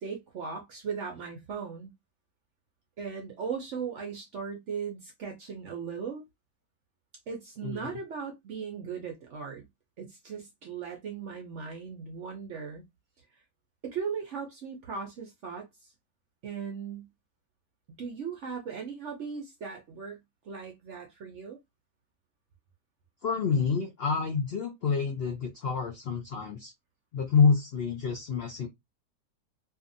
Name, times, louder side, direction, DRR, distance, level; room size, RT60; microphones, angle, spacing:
voice 1, 0.0-1.9 3.0-6.2 7.3-9.7 10.0-12.8 13.8-15.9 16.4-17.1 18.0-21.6, right 6 dB, 65° right, 0.7 m, -38 dB
voice 2, 7.6-8.0 23.2-26.7 27.1-28.7, left 5 dB, 85° left, 0.5 m, -27 dB
2.7 x 2.4 x 2.6 m
omnidirectional pair, 1.8 m